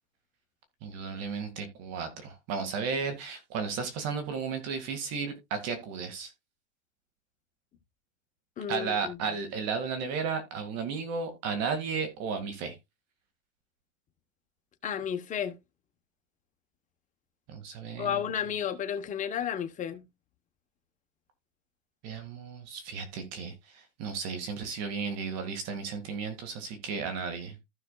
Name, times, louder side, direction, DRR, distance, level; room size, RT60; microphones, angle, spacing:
voice 1, 0.8-6.3 8.7-12.8 17.5-18.2 22.0-27.6, right 5 dB, 45° right, 1.9 m, -34 dB
voice 2, 8.6-9.2 14.8-15.6 18.0-20.0, left 8 dB, 20° left, 0.9 m, -32 dB
15.0 x 5.8 x 2.3 m
supercardioid pair, 150°, 36 cm